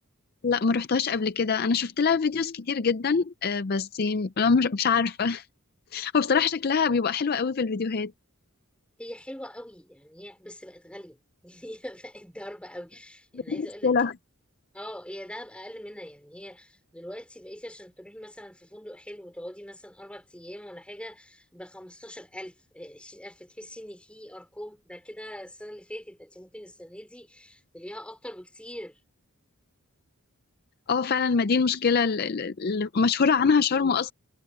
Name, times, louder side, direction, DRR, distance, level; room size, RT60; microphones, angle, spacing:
voice 1, 0.4-5.5 5.9-8.1 13.3-14.1 30.9-34.1, left 5 dB, 45° left, 0.5 m, -24 dB
voice 2, 9.0-11.2 11.4-13.9 14.7-29.0, equal, 5° left, 4.9 m, -42 dB
head